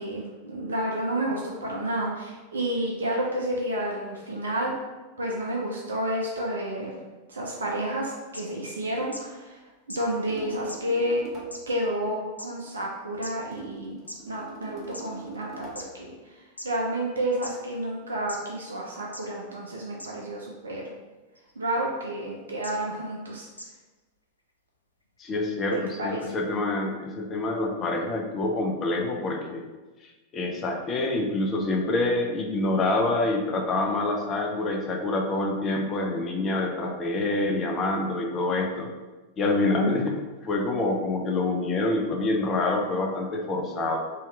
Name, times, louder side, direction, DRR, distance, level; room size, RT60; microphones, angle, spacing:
voice 1, 0.0-4.7 5.2-7.0 7.3-9.6 10.0-11.2 11.7-14.0 14.3-20.9 21.6-23.5 26.0-26.3, right 1 dB, 70° right, -2 dB, 0.4 m, -30 dB
sound 1, 8.3-8.4 9.1-9.2 9.9-10.0 10.7-10.8 11.5-11.6 12.4-12.5 13.2-13.3 14.1-14.2 14.9-15.0 15.8-15.9 16.6-16.7 17.4-17.5 18.3-18.4 19.1-19.2 20.0-20.1 21.4-21.5 22.6-22.7 23.6-23.7, left 1 dB, 85° left, 0.3 m, -38 dB
sound 2, 10.3-11.6 13.5-15.9, right 3 dB, 25° right, 0.8 m, -43 dB
voice 2, 25.2-29.6 30.3-38.9 39.4-40.2 40.4-44.0, left 2 dB, 30° left, 2 dB, 0.5 m, -26 dB
2.8 x 2.3 x 3.1 m, 1.2 s
figure-of-eight pair, 90°, 0 cm